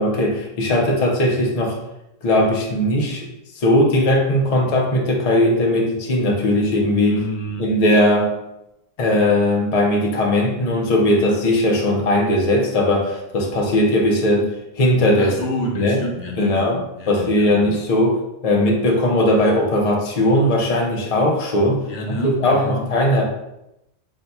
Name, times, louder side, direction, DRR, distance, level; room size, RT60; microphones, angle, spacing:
voice 1, 0.0-1.8 2.2-3.3 3.5-7.2 7.6-8.3 9.0-14.5 14.8-15.4 15.7-16.0 16.4-16.8 17.1-21.8 22.1-23.2, left 1 dB, 45° left, 0 dB, 0.6 m, -18 dB
voice 2, 7.0-7.7 15.2-17.8 21.9-22.9, equal, 80° left, 0 dB, 0.9 m, -29 dB
3.9 x 2.7 x 2.2 m, 0.85 s
omnidirectional pair, 1.1 m